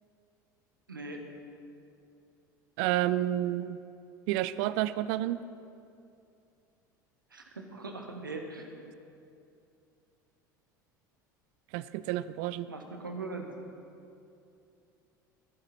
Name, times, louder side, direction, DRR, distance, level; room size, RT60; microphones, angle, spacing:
voice 1, 0.9-1.2 7.3-8.8 12.7-13.5, right 3 dB, 85° right, 4 dB, 1.3 m, -40 dB
voice 2, 2.8-3.8 4.3-5.4 11.7-12.7, right 14 dB, 55° right, 16 dB, 0.5 m, -30 dB
20.5 x 8.9 x 4.3 m, 2.6 s
figure-of-eight pair, 70°, 11 cm